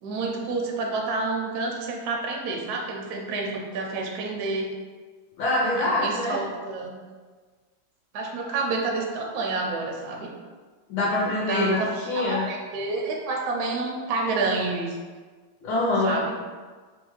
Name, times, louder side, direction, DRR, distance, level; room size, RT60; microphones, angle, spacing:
voice 1, 0.0-4.7 5.8-7.0 8.1-10.3 11.5-11.9 12.1-15.0 16.0-16.3, right 3 dB, 75° right, 0 dB, 0.9 m, -29 dB
voice 2, 5.4-6.4 10.9-12.5 15.6-16.2, left 2 dB, 70° left, -6 dB, 1.1 m, -25 dB
3.2 x 2.3 x 3.0 m, 1.5 s
omnidirectional pair, 2.1 m